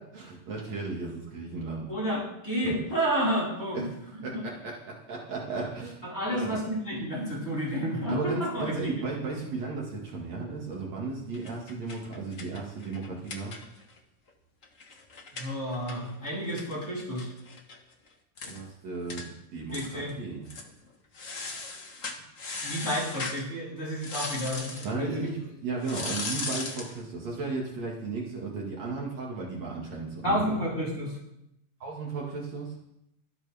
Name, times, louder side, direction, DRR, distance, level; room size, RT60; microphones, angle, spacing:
voice 1, 0.0-1.9 2.6-2.8 3.7-4.0 4.2-6.0 6.3-6.6 8.1-13.5 18.4-19.2 19.5-20.5 24.8-30.6 31.8-32.7, right 3 dB, 55° right, -3 dB, 3.2 m, -35 dB
voice 2, 1.9-3.8 4.3-4.4 6.0-8.9 15.4-17.3 19.7-20.2 22.6-25.3 30.2-31.2, equal, 20° left, -5 dB, 5.5 m, -30 dB
sound 1, 11.3-14.0 14.3-14.4 14.6-17.8 18.1-18.2 18.4-18.6 19.1-19.3 19.7-20.1 20.4-20.7 21.1-23.4 24.0-24.9 25.8-27.0, left 3 dB, 75° left, 0.7 m, -38 dB
24.5 x 9.0 x 3.6 m, 0.81 s
omnidirectional pair, 3.8 m